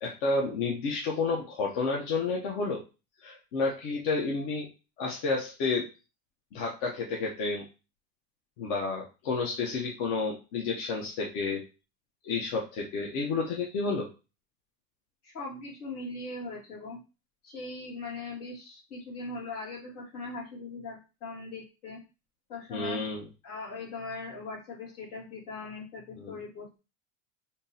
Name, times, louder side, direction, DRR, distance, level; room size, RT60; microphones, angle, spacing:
voice 1, 0.0-2.8 3.2-4.7 5.0-5.8 6.5-7.6 8.6-11.6 12.2-14.1 22.7-23.2 26.2-26.4, left 4 dB, 70° left, -2 dB, 1.0 m, -30 dB
voice 2, 15.2-17.0 17.4-22.0 22.5-23.0 23.4-26.8, left 3 dB, 90° left, -4 dB, 2.1 m, -40 dB
3.6 x 2.7 x 2.7 m, 0.30 s
supercardioid pair, 100°, 43 cm